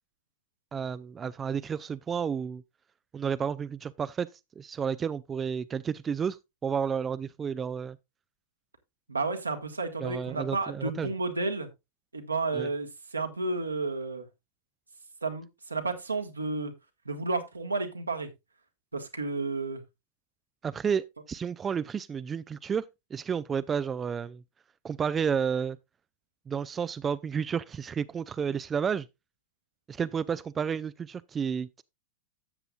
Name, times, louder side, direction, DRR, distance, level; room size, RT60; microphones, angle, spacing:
voice 1, 0.7-2.6 3.1-4.3 4.6-6.4 6.6-8.0 10.0-11.1 12.5-12.7 20.6-22.8 23.1-24.4 24.8-25.8 26.5-29.1 29.9-31.8, right 7 dB, 20° right, 0.4 m, -31 dB
voice 2, 9.1-11.7 12.1-14.3 15.2-16.7 17.0-18.3 18.9-19.8, right 3 dB, 80° right, 1.6 m, -32 dB
13.0 x 8.1 x 2.4 m
figure-of-eight pair, 90°, 0 cm